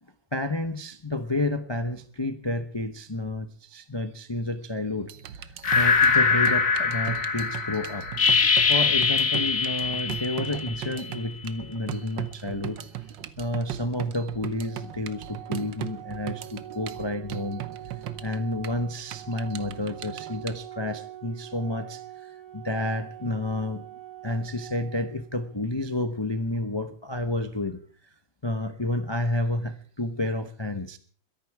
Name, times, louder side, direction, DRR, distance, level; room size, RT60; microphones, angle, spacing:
voice 1, 0.3-5.1 5.4-8.1 8.7-12.8 13.4-17.6 18.2-23.8 24.2-27.8 28.4-31.0, left 2 dB, 30° left, 9 dB, 0.5 m, -30 dB
sound 1, 5.0-20.6, right 11 dB, 70° right, 1.6 m, -38 dB
sound 2, 5.6-11.1, left 5 dB, 45° left, 1.7 m, -23 dB
Organ, 14.7-25.6, right 13 dB, 35° right, 7.7 m, -44 dB
22.0 x 11.5 x 4.7 m, 0.43 s
omnidirectional pair, 2.2 m